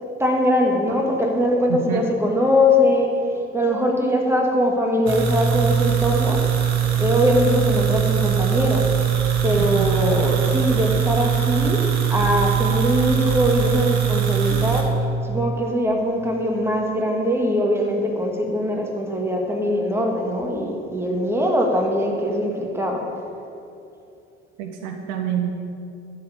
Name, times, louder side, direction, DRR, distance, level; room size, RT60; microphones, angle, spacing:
voice 1, 0.2-6.5 7.0-8.9 9.4-14.9 15.2-23.1, left 1 dB, 5° right, 0 dB, 2.4 m, -21 dB
voice 2, 1.7-2.1 9.6-10.1 24.6-25.5, right 9 dB, 70° right, 4 dB, 1.1 m, -27 dB
sound 1, 5.1-14.8, right 8 dB, 50° right, 1.9 m, -21 dB
12.5 x 5.0 x 8.7 m, 2.8 s
hypercardioid pair, 60°, 34 cm